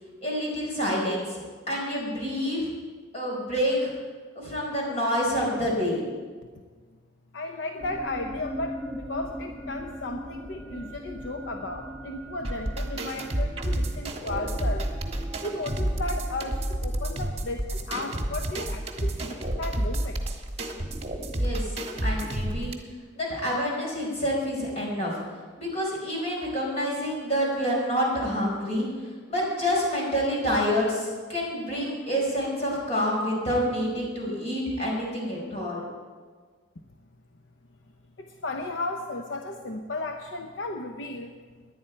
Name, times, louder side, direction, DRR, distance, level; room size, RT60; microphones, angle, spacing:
voice 1, 0.2-1.4 1.7-2.7 3.1-3.9 4.3-6.0 21.3-21.7 22.0-22.7 23.1-25.2 25.6-28.9 29.3-35.9, equal, 35° left, -3 dB, 4.7 m, -27 dB
voice 2, 7.3-14.9 15.4-20.2 38.2-41.3, left 2 dB, 70° left, 4 dB, 0.8 m, -34 dB
sound 1, 7.8-17.6, right 1 dB, 5° left, 1.2 m, -41 dB
sound 2, 12.4-22.7, right 1 dB, 30° right, 1.4 m, -30 dB
18.0 x 11.0 x 4.5 m, 1.5 s
head